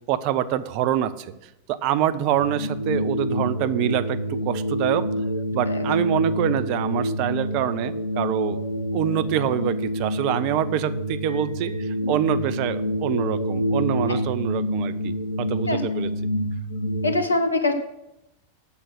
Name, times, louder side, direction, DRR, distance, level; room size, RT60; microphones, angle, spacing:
voice 1, 0.1-1.3 1.7-5.1 5.5-8.6 8.9-16.1, right 11 dB, 45° right, 13 dB, 0.6 m, -25 dB
sound 1, 2.3-17.1, equal, 80° right, 1.6 m, -27 dB
voice 2, 5.7-6.0 14.1-14.2 15.7-15.8 17.0-17.7, left 2 dB, 80° left, 7 dB, 1.1 m, -23 dB
8.4 x 7.4 x 6.4 m, 0.88 s
figure-of-eight pair, 90°, 0 cm